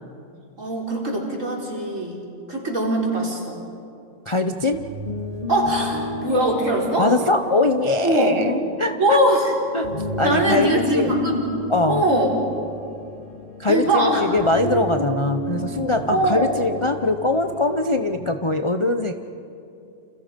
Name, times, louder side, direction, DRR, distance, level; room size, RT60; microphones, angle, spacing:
voice 1, 0.6-2.2 2.5-3.6 5.5-7.1 8.0-8.4 9.0-9.5 10.2-11.4 11.9-12.3 13.7-14.2 16.1-16.6, right 1 dB, 45° right, -2 dB, 4.7 m, -21 dB
voice 2, 4.3-4.8 7.0-9.2 9.7-9.9 10.2-11.1 11.7-12.0 13.6-19.1, left 2 dB, 45° left, 6 dB, 0.3 m, -22 dB
sound 1, 4.6-18.0, equal, 30° left, 2.7 m, -32 dB
29.5 x 27.5 x 5.3 m, 2.6 s
omnidirectional pair, 1.9 m